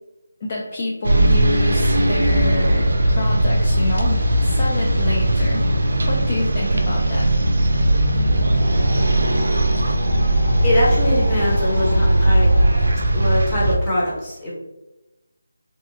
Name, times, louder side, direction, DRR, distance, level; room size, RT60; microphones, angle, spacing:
voice 1, 0.4-2.9 3.1-5.6 6.1-7.3, left 1 dB, 30° left, -4 dB, 0.4 m, -27 dB
sound 1, 1.0-13.8, right 1 dB, 65° right, 0.4 m, -18 dB
Wind, 8.3-12.9, equal, 70° left, 0.7 m, -32 dB
voice 2, 10.6-12.5 13.1-14.5, left 1 dB, 15° left, -8 dB, 0.7 m, -22 dB
2.7 x 2.2 x 2.5 m, 1.0 s
figure-of-eight pair, 170°, 0 cm